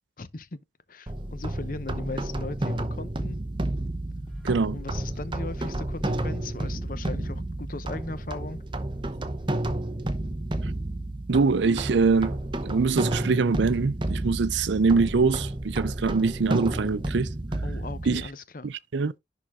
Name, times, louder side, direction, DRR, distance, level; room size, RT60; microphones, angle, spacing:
voice 1, 0.2-0.6 0.9-3.4 4.7-8.6 17.6-18.7, left 2 dB, 45° left, 0.7 m, -38 dB
sound 1, 1.1-18.3, right 1 dB, 25° right, 0.9 m, -31 dB
sound 2, 4.3-7.7, equal, 5° left, 2.1 m, -44 dB
voice 2, 4.4-4.8 11.3-17.3 18.1-18.2 18.6-19.1, right 4 dB, 75° right, 0.5 m, -24 dB
11.0 x 3.9 x 3.6 m
head